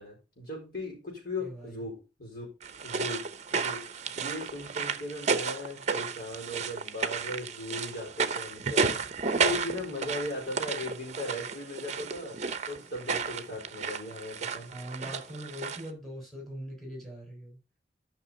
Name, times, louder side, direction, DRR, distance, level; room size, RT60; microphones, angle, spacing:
voice 1, 0.0-2.5 2.8-3.2 3.5-12.4 12.7-14.7, left 2 dB, 60° left, -3 dB, 5.0 m, -38 dB
voice 2, 1.4-1.8 14.7-17.6, equal, ahead, 0 dB, 5.4 m, -41 dB
sound 1, 2.6-15.9, right 5 dB, 40° right, 0.8 m, -32 dB
12.0 x 6.0 x 3.9 m, 0.30 s
head